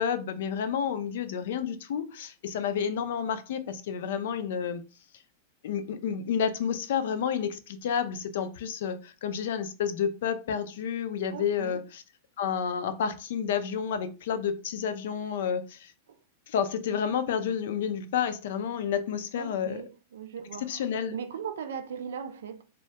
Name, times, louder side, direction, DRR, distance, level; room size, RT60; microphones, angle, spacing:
voice 1, 0.0-4.8 5.6-12.0 12.4-15.9 16.5-19.8 20.6-21.1, left 7 dB, 70° left, 0.3 m, -30 dB
voice 2, 11.3-11.8 16.1-16.2 19.4-20.8 21.1-22.6, right 7 dB, 80° right, 0.4 m, -38 dB
2.2 x 2.1 x 2.7 m
hypercardioid pair, 120°, 0 cm